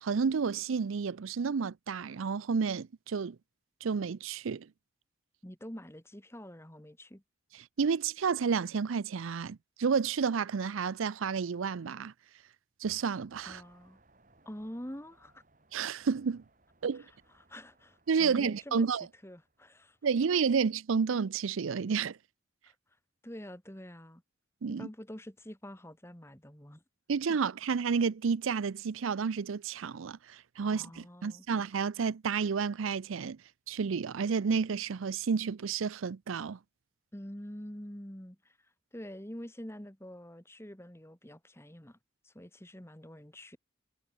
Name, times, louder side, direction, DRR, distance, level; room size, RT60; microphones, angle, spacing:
voice 1, 0.0-3.4 3.8-4.7 7.8-12.1 12.8-13.6 15.7-16.4 16.8-17.1 18.1-19.1 20.0-22.2 24.6-24.9 27.1-33.4 33.7-36.6, right 6 dB, 80° right, 0.5 m, -30 dB
voice 2, 5.4-7.2 13.4-14.0 14.5-15.4 16.9-18.9 19.2-20.0 20.3-20.4 22.6-22.8 23.2-24.2 24.7-26.8 27.3-27.4 30.6-31.5 37.1-42.0 42.2-43.6, equal, 10° left, 2.0 m, -46 dB
sound 1, 13.3-21.2, right 2 dB, 40° right, 3.1 m, -68 dB
head